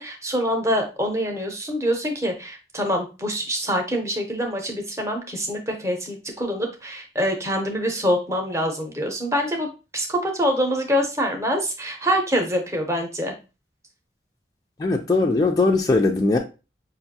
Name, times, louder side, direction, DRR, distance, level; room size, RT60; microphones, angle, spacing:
voice 1, 0.0-9.7 9.9-13.3, equal, 15° right, 0.7 m, -25 dB
voice 2, 14.8-16.4, left 3 dB, 20° left, 0.3 m, -20 dB
5.5 x 2.5 x 2.7 m
head